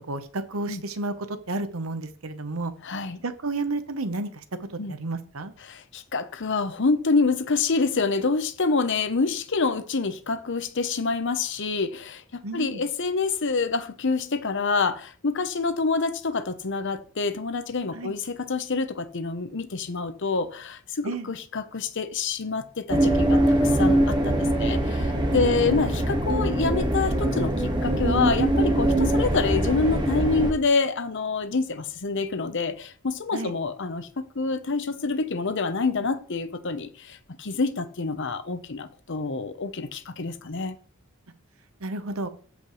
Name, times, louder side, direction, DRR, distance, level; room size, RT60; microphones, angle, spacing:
voice 1, 0.1-2.7 3.2-4.3 4.9-5.5 12.4-12.8 17.9-18.1 21.0-21.3 25.3-25.8 33.3-33.5 41.8-42.3, right 2 dB, 85° right, 1.0 m, -31 dB
voice 2, 2.8-3.2 4.8-5.0 5.6-40.8, left 4 dB, 60° left, 0.9 m, -27 dB
sound 1, 22.9-30.5, right 1 dB, 20° right, 1.6 m, -23 dB
14.5 x 5.2 x 3.2 m
head